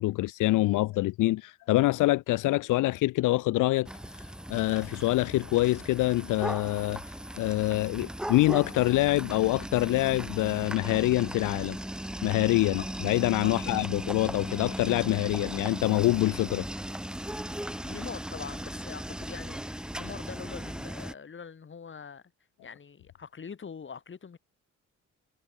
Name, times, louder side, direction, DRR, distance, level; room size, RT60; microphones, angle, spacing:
voice 1, 0.0-11.8 12.2-16.7, left 18 dB, 85° left, 0.6 m, -26 dB
sound 1, 3.9-21.1, equal, 5° right, 0.9 m, -37 dB
voice 2, 13.4-13.8 17.8-22.2 22.6-24.4, left 6 dB, 40° left, 2.7 m, -43 dB
cardioid pair, 85°, 30 cm